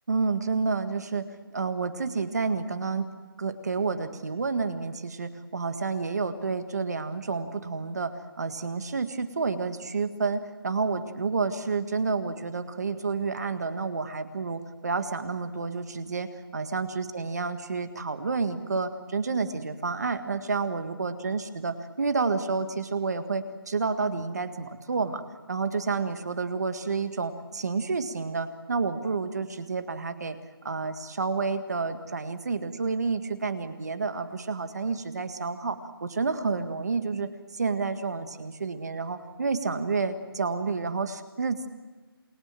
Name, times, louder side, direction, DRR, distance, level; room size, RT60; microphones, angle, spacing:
voice 1, 0.1-3.1 3.4-30.4 30.6-41.7, right 4 dB, 45° right, 9 dB, 1.8 m, -30 dB
28.0 x 21.5 x 7.7 m, 1.3 s
hypercardioid pair, 175°, 12 cm